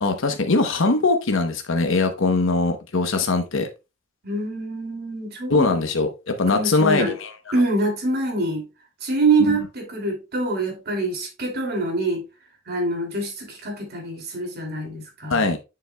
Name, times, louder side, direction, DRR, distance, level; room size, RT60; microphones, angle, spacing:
voice 1, 0.0-3.7 5.5-7.3 9.5-9.6 15.3-15.6, left 3 dB, 70° left, 0.9 m, -21 dB
voice 2, 4.2-5.7 6.5-7.1 7.5-8.7 9.0-12.2 12.7-15.4, right 2 dB, 50° right, 2.5 m, -25 dB
7.3 x 6.9 x 2.2 m
head